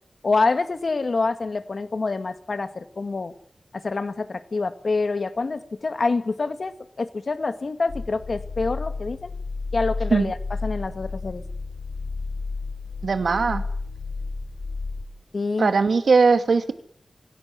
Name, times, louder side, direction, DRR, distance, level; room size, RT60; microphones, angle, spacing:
voice 1, 0.2-3.3 3.7-9.3 9.7-10.4 10.6-11.4 15.3-15.7, left 3 dB, 55° left, 10 dB, 2.0 m, -26 dB
sound 1, 7.9-15.0, left 3 dB, 85° left, 7.5 m, -32 dB
voice 2, 13.0-13.6 15.6-16.7, right 4 dB, 85° right, 9 dB, 2.4 m, -19 dB
26.0 x 17.0 x 9.9 m, 0.64 s
wide cardioid pair, 95°, 0 cm